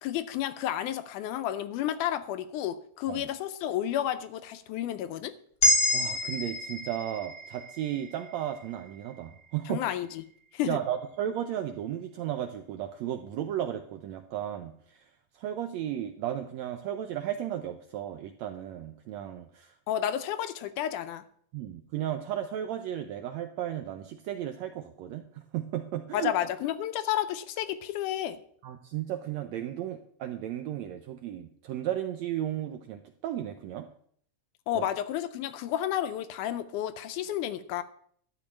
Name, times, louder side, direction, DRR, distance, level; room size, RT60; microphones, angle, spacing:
voice 1, 0.0-5.3 9.7-10.2 10.5-10.8 19.9-21.2 26.1-28.4 34.7-37.8, left 11 dB, 80° left, 11 dB, 2.0 m, -31 dB
sound 1, 5.6-9.9, left 1 dB, 30° left, 1.1 m, -29 dB
voice 2, 5.9-9.8 10.7-19.8 21.5-26.3 28.6-33.9 34.7-34.8, right 11 dB, 80° right, 7 dB, 1.6 m, -34 dB
12.5 x 4.7 x 8.6 m, 0.63 s
omnidirectional pair, 3.8 m